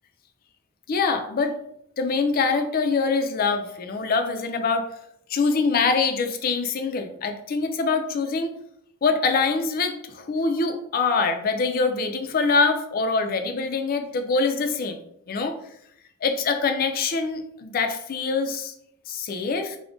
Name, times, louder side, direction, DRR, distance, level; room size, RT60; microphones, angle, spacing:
voice 1, 0.9-1.5 2.0-4.9 5.3-8.5 9.0-15.0 15.3-15.5 16.2-18.7 19.1-19.8, left 4 dB, 45° left, 6 dB, 0.4 m, -24 dB
2.4 x 2.1 x 3.6 m, 0.73 s
head